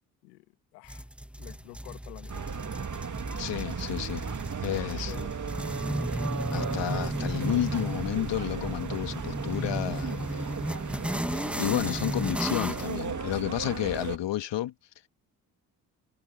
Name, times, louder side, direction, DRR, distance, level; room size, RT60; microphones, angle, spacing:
voice 1, 0.7-1.1 1.4-2.7 4.7-5.6, left 24 dB, 80° left, 1.5 m, -48 dB
sound 1, 0.9-13.0, right 1 dB, ahead, 1.1 m, -34 dB
sound 2, 2.3-14.2, right 6 dB, 35° right, 2.4 m, -36 dB
voice 2, 3.4-4.2 4.6-5.1 6.5-10.5 11.3-14.7, left 13 dB, 55° left, 2.4 m, -31 dB
hypercardioid pair, 45°, 50 cm